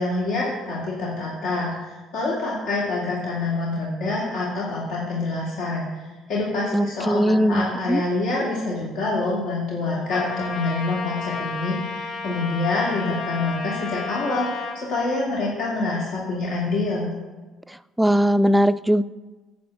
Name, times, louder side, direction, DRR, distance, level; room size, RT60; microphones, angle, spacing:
voice 1, 0.0-5.9 6.3-17.1, left 2 dB, 75° left, -6 dB, 2.4 m, -26 dB
voice 2, 6.7-8.0 18.0-19.0, equal, 5° right, 14 dB, 0.3 m, -19 dB
Trumpet, 10.1-14.8, left 4 dB, 60° left, 1.8 m, -32 dB
10.5 x 4.2 x 7.6 m, 1.3 s
cardioid pair, 115°, 0 cm